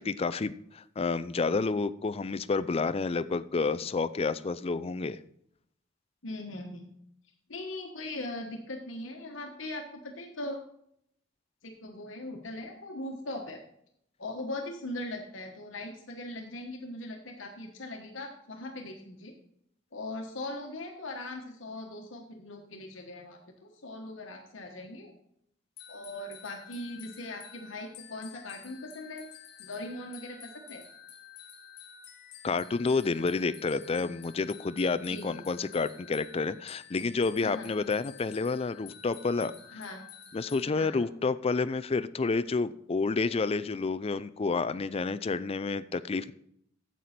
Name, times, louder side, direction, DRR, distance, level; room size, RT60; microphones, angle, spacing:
voice 1, 0.0-5.2 32.4-39.5 40.3-46.3, left 4 dB, 30° left, 14 dB, 0.4 m, -29 dB
voice 2, 6.2-6.9 7.5-10.6 11.6-13.6 14.2-19.3 19.9-25.1 25.9-29.3 29.6-30.8 35.1-35.4 37.4-37.7 39.7-40.0 40.6-41.1, left 2 dB, 80° left, 2 dB, 1.2 m, -40 dB
sound 1, 25.8-40.6, left 8 dB, 55° left, 1.0 m, -50 dB
9.2 x 7.7 x 4.2 m, 0.71 s
head